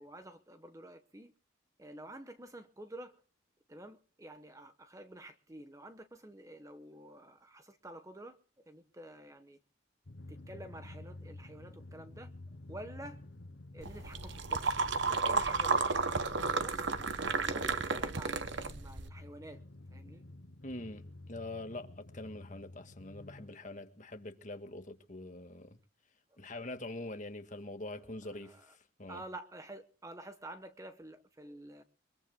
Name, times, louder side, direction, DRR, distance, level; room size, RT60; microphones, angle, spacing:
voice 1, 0.0-1.3 1.8-3.2 3.7-8.4 8.7-9.6 10.3-12.3 12.7-13.2 13.7-16.9 17.2-19.6 19.9-20.2 28.2-28.8 29.1-31.8, right 1 dB, 15° right, 1.0 m, -49 dB
Drum, 10.0-23.5, left 2 dB, 55° left, 0.9 m, -50 dB
sound 1, 13.8-19.1, right 4 dB, 60° right, 1.0 m, -32 dB
voice 2, 20.6-21.0 21.3-25.7 26.4-29.2, left 2 dB, 40° left, 1.7 m, -44 dB
24.0 x 21.5 x 2.2 m
head